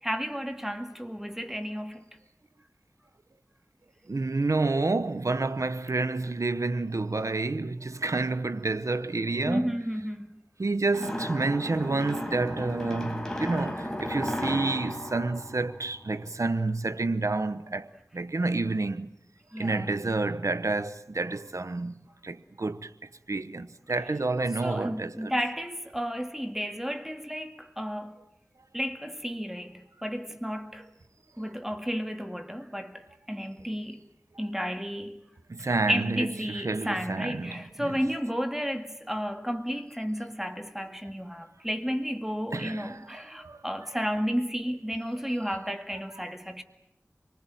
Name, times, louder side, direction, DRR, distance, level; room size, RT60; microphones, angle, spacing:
voice 1, 0.0-2.0 9.5-10.3 19.5-19.9 24.0-24.1 24.6-28.2 28.7-30.9 31.4-34.0 34.4-35.2 35.6-46.6, equal, 5° right, 1.9 m, -32 dB
voice 2, 4.1-9.8 10.6-17.9 18.1-19.1 19.6-22.9 23.3-25.3 35.5-37.6 42.5-43.6, right 3 dB, 75° right, 1.0 m, -29 dB
sound 1, 10.9-16.3, left 1 dB, 10° left, 5.3 m, -35 dB
27.5 x 20.0 x 9.2 m
wide cardioid pair, 45°, 5 cm